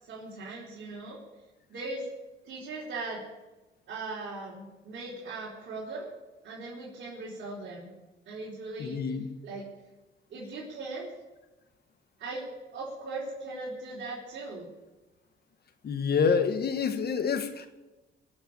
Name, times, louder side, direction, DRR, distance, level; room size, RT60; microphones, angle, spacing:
voice 1, 0.0-1.2 1.7-2.0 2.4-3.2 3.9-6.1 6.4-7.9 8.3-9.0 9.4-9.6 10.3-11.1 12.2-14.7, right 3 dB, 65° right, -6 dB, 4.3 m, -39 dB
voice 2, 8.8-9.2 15.8-17.7, left 6 dB, 55° left, 8 dB, 1.6 m, -27 dB
20.5 x 7.1 x 8.8 m, 1.1 s
cardioid pair, 90°, 20 cm